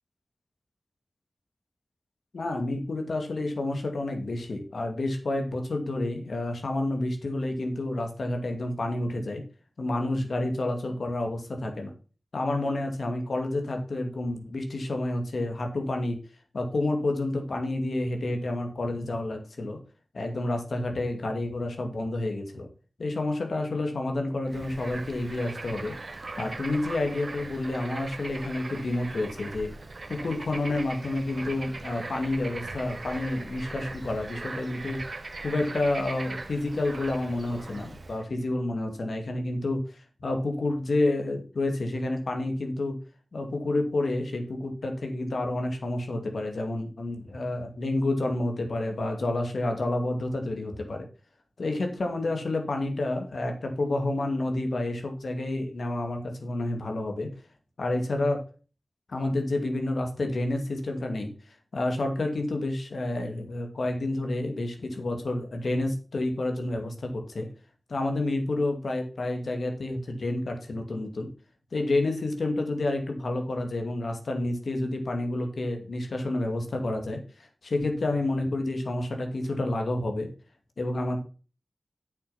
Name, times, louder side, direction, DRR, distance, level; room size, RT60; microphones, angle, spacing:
voice 1, 2.3-9.4 9.8-11.9 12.3-16.2 16.5-19.8 20.1-22.7 23.0-25.9 26.4-29.7 30.1-35.0 35.4-43.0 43.3-51.1 51.6-57.3 57.8-58.4 59.1-61.3 61.7-67.5 67.9-71.3 71.7-80.3 80.8-81.2, left 2 dB, 80° left, 4 dB, 2.4 m, -29 dB
Bird / Frog, 24.5-38.2, right 3 dB, 55° right, 1.2 m, -40 dB
8.3 x 6.9 x 5.7 m, 0.36 s
wide cardioid pair, 65°, 0 cm